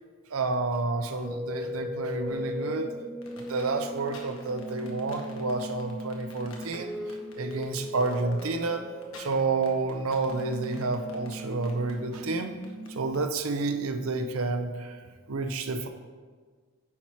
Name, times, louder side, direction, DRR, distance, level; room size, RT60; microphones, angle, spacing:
voice 1, 0.3-2.9 3.4-7.0 7.4-8.9 9.2-12.6 12.9-15.0 15.3-15.9, right 3 dB, 90° right, 7 dB, 0.7 m, -30 dB
sound 1, 1.2-13.2, left 1 dB, 5° right, 0.4 m, -39 dB
sound 2, 3.2-13.2, left 3 dB, 75° left, 1.4 m, -50 dB
9.9 x 4.5 x 4.5 m, 1.5 s
head